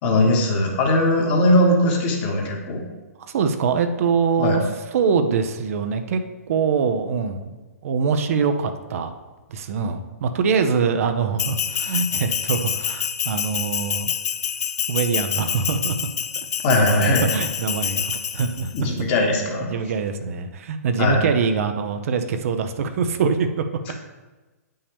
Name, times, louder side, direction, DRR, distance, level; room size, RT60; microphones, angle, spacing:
voice 1, 0.0-2.8 4.4-4.6 16.6-17.3 18.7-19.7 21.0-21.2 23.9-24.0, left 1 dB, 40° left, -1 dB, 1.7 m, -19 dB
voice 2, 3.2-4.6 4.9-6.2 6.5-7.6 7.8-9.1 9.5-14.1 14.9-16.0 16.7-18.7 19.7-23.5, right 5 dB, 60° right, 7 dB, 0.7 m, -23 dB
Bell, 11.4-18.8, left 8 dB, 70° left, 0.5 m, -27 dB
8.3 x 5.5 x 3.5 m, 1.2 s
hypercardioid pair, 130°, 9 cm